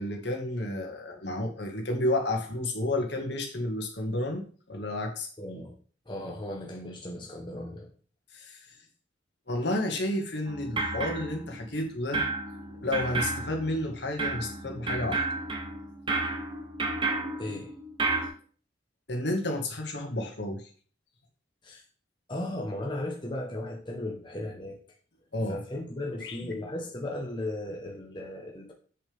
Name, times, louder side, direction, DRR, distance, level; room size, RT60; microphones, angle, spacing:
voice 1, 0.0-5.3 8.3-8.6 9.5-12.3 12.7-15.2 19.1-20.6 25.3-25.6 26.2-26.4, left 1 dB, 65° left, 2 dB, 2.0 m, -31 dB
voice 2, 5.4-5.7 6.1-7.9 17.4-17.7 21.6-21.8 22.3-24.8 25.5-28.7, left 1 dB, 25° left, 0 dB, 1.2 m, -36 dB
sound 1, 10.5-11.8 12.1-18.3, right 3 dB, 25° right, 1.5 m, -32 dB
7.9 x 7.1 x 3.6 m, 0.42 s
head